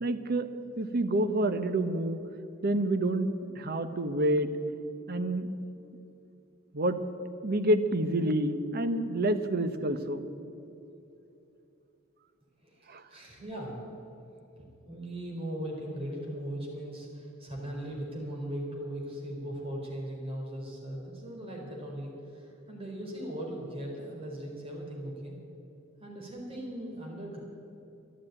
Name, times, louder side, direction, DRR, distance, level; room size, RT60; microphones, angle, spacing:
voice 1, 0.0-0.5 0.8-2.2 2.6-4.5 5.1-5.5 6.7-7.0 7.4-10.2 12.9-13.0, right 1 dB, 50° right, 10 dB, 0.9 m, -28 dB
voice 2, 12.6-13.8 14.6-25.4 26.0-27.4, right 1 dB, 25° right, -2 dB, 3.7 m, -39 dB
13.5 x 11.5 x 8.9 m, 2.8 s
head